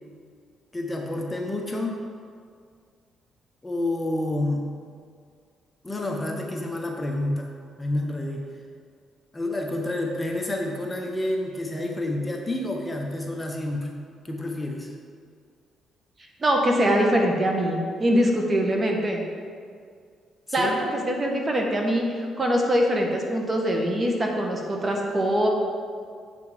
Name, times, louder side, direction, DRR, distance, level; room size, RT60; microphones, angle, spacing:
voice 1, 0.7-2.0 3.6-4.7 5.8-8.4 9.3-13.9 14.2-14.9 20.5-20.8, left 1 dB, 15° left, 1 dB, 0.9 m, -29 dB
voice 2, 16.4-19.2 20.5-25.5, equal, 30° right, 1 dB, 1.2 m, -23 dB
8.1 x 5.1 x 5.0 m, 2.1 s
cardioid pair, 90°, 0 cm